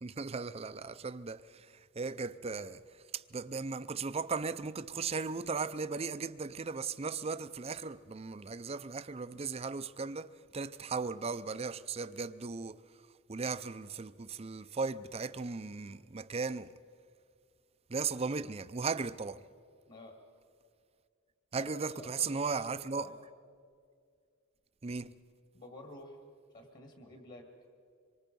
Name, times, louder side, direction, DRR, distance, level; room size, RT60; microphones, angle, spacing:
voice 1, 0.0-1.7 2.0-2.8 3.1-10.3 10.5-12.8 13.3-16.7 17.9-19.4 21.5-23.0 24.8-25.1, right 4 dB, 30° right, 0.5 m, -37 dB
voice 2, 21.6-23.2 25.5-26.3 26.5-27.5, left 1 dB, 40° left, 2.1 m, -50 dB
26.0 x 23.5 x 5.4 m
head